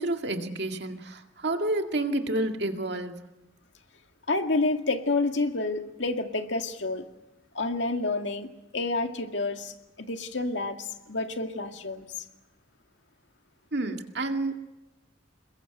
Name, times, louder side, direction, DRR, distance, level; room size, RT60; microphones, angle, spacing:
voice 1, 0.0-3.1 13.7-14.6, right 2 dB, 55° right, 4 dB, 2.1 m, -29 dB
voice 2, 4.3-7.1 7.5-12.1, left 3 dB, 65° left, 5 dB, 2.2 m, -29 dB
28.0 x 22.0 x 8.0 m, 0.95 s
head